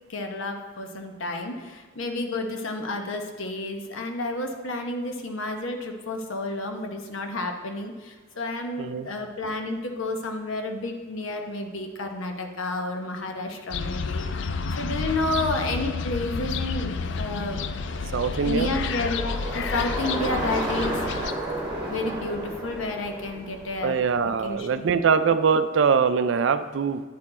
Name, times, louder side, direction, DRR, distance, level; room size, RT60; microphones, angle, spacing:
voice 1, 0.1-14.5 14.8-17.6 18.4-21.0 21.8-24.9, left 2 dB, 80° left, 4 dB, 0.9 m, -31 dB
sound 1, 13.7-21.3, left 4 dB, 60° left, 0.4 m, -30 dB
Bicycle, 16.3-24.6, right 1 dB, 20° right, 1.4 m, -33 dB
voice 2, 18.1-18.7 23.8-27.0, right 6 dB, 65° right, 11 dB, 0.4 m, -22 dB
9.4 x 4.5 x 4.2 m, 1.4 s
head